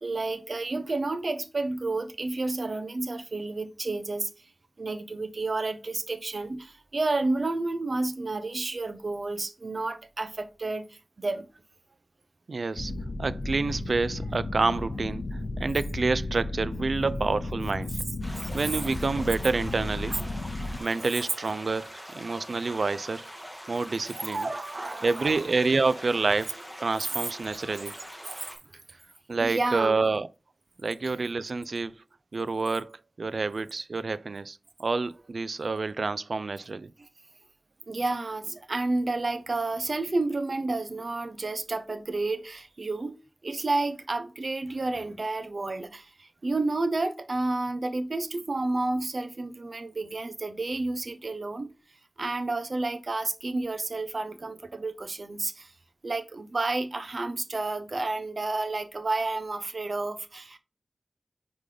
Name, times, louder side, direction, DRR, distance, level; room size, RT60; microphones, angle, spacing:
voice 1, 0.0-4.3 4.8-11.5 17.0-17.1 24.2-25.4 29.4-30.0 31.0-31.1 37.9-51.7 52.2-55.7 56.0-60.6, right 2 dB, 60° right, 0.7 m, -30 dB
voice 2, 12.5-12.9 13.2-17.9 18.5-20.2 20.8-23.3 23.7-24.5 25.0-28.0 29.3-30.3 30.8-31.9 32.3-36.9, right 3 dB, 75° right, 0.4 m, -28 dB
sound 1, 12.8-20.8, left 2 dB, 70° left, 0.8 m, -34 dB
sound 2, 18.2-28.6, equal, ahead, 2.1 m, -43 dB
5.1 x 4.9 x 3.9 m
wide cardioid pair, 80°, 0 cm